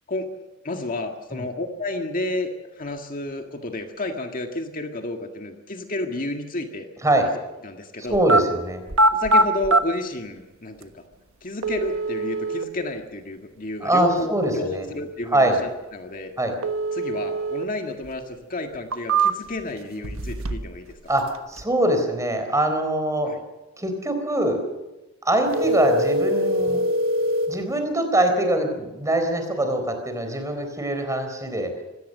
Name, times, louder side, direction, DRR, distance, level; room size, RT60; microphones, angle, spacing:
voice 1, 0.6-2.5 2.8-6.9 7.6-8.2 9.1-11.0 11.4-16.3 16.9-20.9 23.3-23.4, left 2 dB, 40° left, 4 dB, 1.8 m, -31 dB
voice 2, 8.1-8.8 13.8-14.9 15.3-15.6 16.4-16.5 21.1-21.2 21.5-23.3 23.8-24.6 25.2-26.8 27.5-31.7, right 1 dB, 15° right, 6 dB, 3.9 m, -23 dB
Phone Sounds, 8.1-8.4 8.9-9.8 10.8-10.9 11.6-12.7 16.6-17.7 18.0-18.1 18.7-19.6 20.0-20.8 21.0-21.6, right 2 dB, 85° right, 1.3 m, -22 dB
sound 1, 25.5-27.6, equal, 70° right, 3.2 m, -23 dB
25.0 x 17.5 x 6.6 m, 1.0 s
head